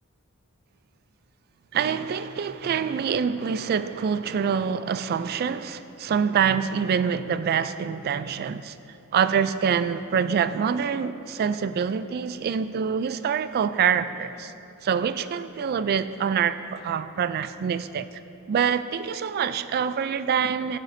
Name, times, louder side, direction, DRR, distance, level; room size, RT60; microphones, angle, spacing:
voice 1, 1.7-8.8 9.1-14.5 14.8-18.1 18.5-20.8, right 7 dB, 45° right, 0.3 m, -25 dB
12.0 x 10.5 x 2.7 m
head